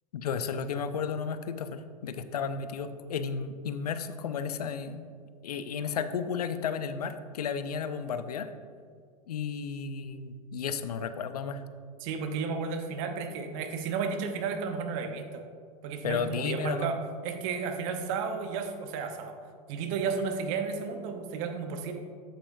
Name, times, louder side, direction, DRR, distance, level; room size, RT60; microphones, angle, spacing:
voice 1, 0.1-5.1 5.4-8.5 9.3-11.6 16.0-16.9, left 6 dB, 85° left, 11 dB, 0.5 m, -33 dB
voice 2, 12.0-15.4 15.8-17.0 17.2-19.3 19.7-21.9, right 5 dB, 55° right, 5 dB, 0.9 m, -33 dB
8.2 x 7.8 x 2.6 m, 2.2 s
hypercardioid pair, 95°, 19 cm